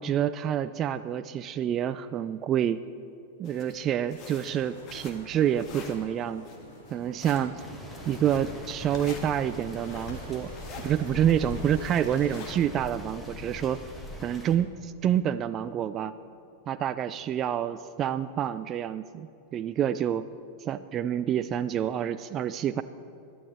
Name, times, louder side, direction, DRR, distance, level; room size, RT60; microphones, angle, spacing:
voice 1, 0.0-2.8 3.4-6.5 6.9-7.6 8.1-10.5 10.8-13.8 14.2-16.1 16.7-20.3 20.6-22.8, right 10 dB, 30° right, 13 dB, 0.3 m, -28 dB
sound 1, 3.4-12.9, left 4 dB, 35° left, 1.7 m, -45 dB
sound 2, 4.1-12.5, equal, 75° left, 3.6 m, -48 dB
sound 3, 7.6-14.6, left 2 dB, 10° left, 1.8 m, -42 dB
21.5 x 12.5 x 3.2 m, 2.8 s
figure-of-eight pair, 90°, 0 cm